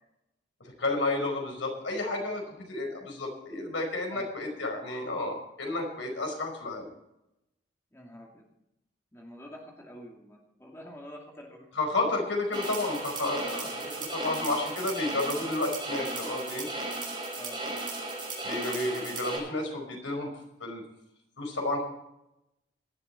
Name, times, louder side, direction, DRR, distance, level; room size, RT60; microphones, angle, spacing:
voice 1, 0.8-6.9 11.7-16.7 18.4-20.3 20.6-20.8 21.4-21.8, left 2 dB, 85° left, 2 dB, 5.0 m, -31 dB
voice 2, 7.9-8.4 9.1-11.7 17.3-17.6 18.5-18.8, equal, 15° left, -1 dB, 2.5 m, -47 dB
sound 1, 12.5-19.4, right 2 dB, 25° right, 6.3 m, -35 dB
17.5 x 12.5 x 4.4 m, 0.87 s
head